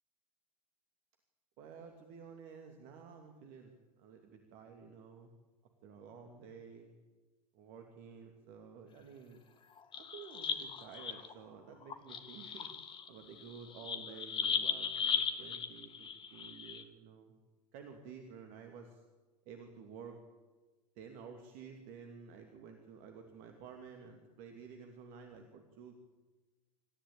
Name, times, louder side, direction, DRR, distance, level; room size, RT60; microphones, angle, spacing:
voice 1, 1.6-5.3 5.8-6.9 7.5-9.4 10.0-12.7 13.1-17.3 17.7-19.0 19.5-20.2 21.0-26.0, right 6 dB, 45° right, 4 dB, 2.8 m, -52 dB
sound 1, 9.8-11.3 11.8-16.8, left 7 dB, 25° left, 2.0 m, -37 dB
27.0 x 14.5 x 8.8 m, 1.2 s
figure-of-eight pair, 90°, 20 cm